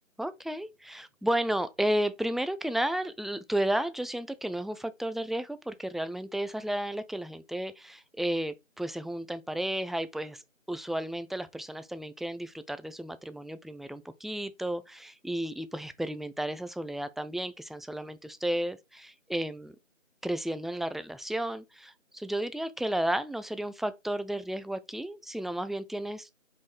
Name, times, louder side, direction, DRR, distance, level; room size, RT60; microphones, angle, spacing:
voice 1, 0.2-10.4 10.7-19.7 20.2-26.3, right 1 dB, ahead, 0.3 m, -33 dB
5.1 x 3.3 x 2.3 m
figure-of-eight pair, 180°, 40 cm